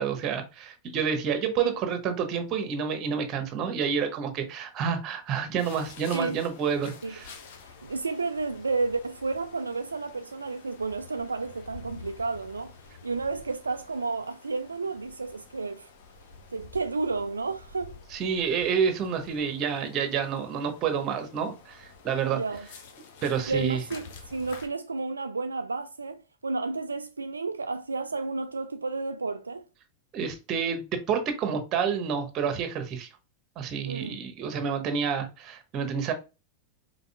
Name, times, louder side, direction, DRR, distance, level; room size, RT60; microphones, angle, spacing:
voice 1, 0.0-7.3 18.1-22.4 23.2-23.8 30.1-33.1 33.6-36.1, right 7 dB, 35° right, 1.1 m, -29 dB
sound 1, 5.6-24.7, left 5 dB, 55° left, 1.0 m, -49 dB
voice 2, 7.7-12.7 13.0-15.9 16.5-18.0 22.3-22.7 23.5-29.7 33.9-34.2, right 3 dB, 75° right, 0.3 m, -31 dB
5.4 x 3.9 x 2.3 m
figure-of-eight pair, 90°, 0 cm